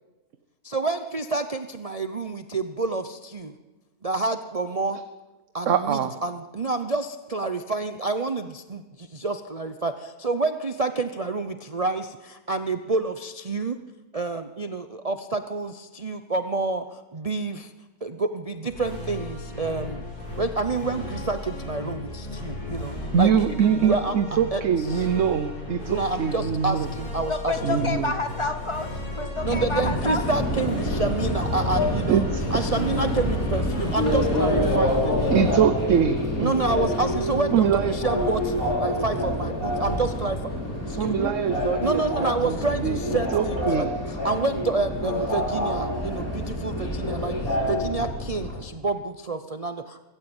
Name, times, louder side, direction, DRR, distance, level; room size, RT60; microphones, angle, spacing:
voice 1, 0.6-3.5 4.0-5.0 5.5-13.8 14.1-17.7 18.0-20.0 20.4-23.3 23.8-24.6 24.9-25.0 25.9-27.8 29.4-32.2 32.5-35.4 36.4-40.4 41.0-41.3 41.8-50.0, right 3 dB, 30° right, 8 dB, 0.7 m, -28 dB
voice 2, 5.7-6.2 23.1-26.9 27.6-28.1 32.1-32.7 35.3-36.5 37.5-37.9 41.0-42.6 42.8-43.9, right 7 dB, 60° right, 10 dB, 1.2 m, -23 dB
sound 1, 18.7-36.1, left 1 dB, 90° left, 7.5 m, -35 dB
voice 3, 27.3-30.2 32.0-32.1 32.8-32.9, left 3 dB, 20° left, 7 dB, 1.9 m, -29 dB
Subway metro underground, 29.3-48.6, left 1 dB, 70° left, 5.5 m, -27 dB
24.0 x 14.5 x 8.8 m, 1.2 s
omnidirectional pair, 1.6 m